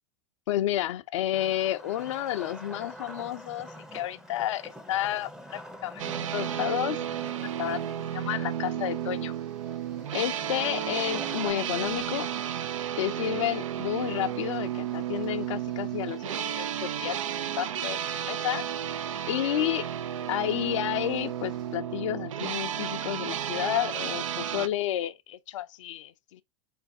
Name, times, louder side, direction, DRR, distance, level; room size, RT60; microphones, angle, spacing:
voice 1, 0.5-9.3 10.1-12.3 13.0-18.7 19.3-19.9 20.3-26.4, left 13 dB, 70° left, 0.5 m, -31 dB
Wood, 1.3-8.1 9.8-11.5, equal, 5° right, 0.6 m, -45 dB
sound 1, 6.0-24.7, right 10 dB, 80° right, 0.4 m, -33 dB
sound 2, 6.4-21.8, right 6 dB, 50° right, 1.1 m, -58 dB
4.0 x 3.3 x 2.6 m
hypercardioid pair, 95°, 16 cm